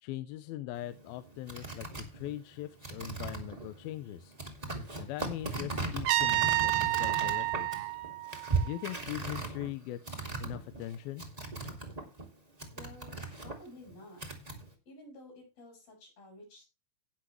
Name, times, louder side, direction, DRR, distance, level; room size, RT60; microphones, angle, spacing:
voice 1, 0.0-4.3 5.0-7.9 8.6-11.2, left 14 dB, 80° left, 11 dB, 2.3 m, -41 dB
sound 1, 0.7-12.3 12.6-14.7, right 3 dB, 35° right, 0.6 m, -38 dB
Trumpet, 6.1-9.0, right 18 dB, 75° right, 2.4 m, -30 dB
voice 2, 12.7-14.2 14.9-16.7, left 1 dB, 60° left, 2 dB, 7.2 m, -52 dB
18.0 x 6.2 x 3.1 m, 0.27 s
omnidirectional pair, 4.7 m